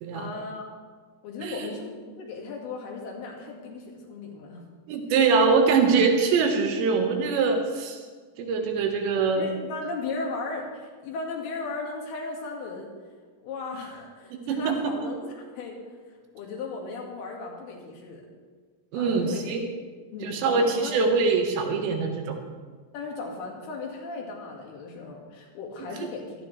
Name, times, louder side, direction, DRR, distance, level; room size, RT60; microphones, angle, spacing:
voice 1, 0.1-0.6 1.2-4.6 9.3-12.9 13.4-15.8 16.4-18.2 18.9-19.5 20.1-21.0 22.9-26.3, left 3 dB, 65° left, 0 dB, 3.8 m, -36 dB
voice 2, 4.9-8.0 8.4-9.5 14.5-14.9 18.9-19.6 20.2-22.5 26.0-26.1, right 4 dB, 80° right, 3 dB, 3.6 m, -23 dB
17.0 x 14.0 x 3.2 m, 1.5 s
omnidirectional pair, 5.0 m